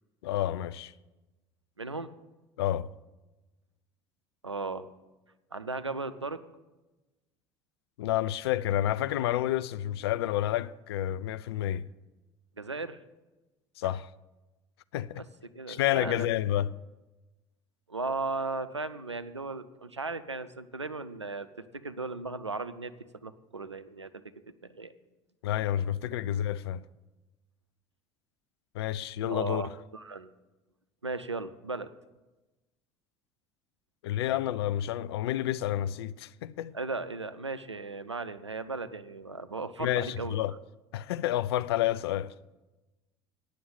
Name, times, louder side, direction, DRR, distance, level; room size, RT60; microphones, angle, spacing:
voice 1, 0.2-0.9 2.6-2.9 8.0-11.8 13.8-14.1 14.9-15.3 15.7-16.8 25.4-26.8 28.7-29.6 34.0-36.8 39.8-40.5 40.9-42.3, left 12 dB, 65° left, 0.4 m, -29 dB
voice 2, 1.8-2.1 4.4-4.9 5.5-6.4 12.6-13.0 13.8-13.9 15.2-15.3 15.5-16.3 17.9-21.5 21.7-22.9 23.2-24.2 24.7-24.9 29.3-30.3 31.0-31.9 36.7-40.6, right 3 dB, 90° right, 0.4 m, -36 dB
9.3 x 6.5 x 8.2 m
figure-of-eight pair, 60°, 14 cm